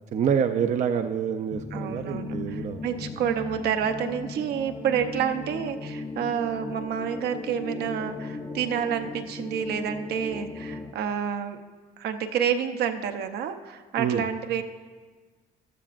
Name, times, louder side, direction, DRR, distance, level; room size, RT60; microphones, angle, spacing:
voice 1, 0.1-2.8 14.0-14.2, right 7 dB, 45° right, 7 dB, 0.5 m, -26 dB
sound 1, 1.5-10.9, left 3 dB, 15° left, 0.6 m, -37 dB
voice 2, 1.7-11.6 12.0-14.6, right 8 dB, 70° right, 6 dB, 0.8 m, -29 dB
14.5 x 12.0 x 2.5 m, 1.4 s
cardioid pair, 110°, 17 cm